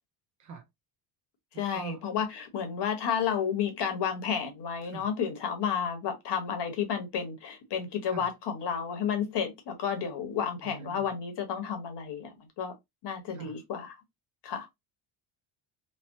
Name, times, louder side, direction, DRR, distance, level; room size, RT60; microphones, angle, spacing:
voice 1, 1.6-12.7 13.0-14.0 14.4-14.7, left 7 dB, 55° left, 1.2 m, -31 dB
voice 2, 10.6-11.1 13.3-13.5, right 4 dB, 40° right, 0.5 m, -42 dB
3.3 x 2.0 x 2.6 m
cardioid pair, 130°, 49 cm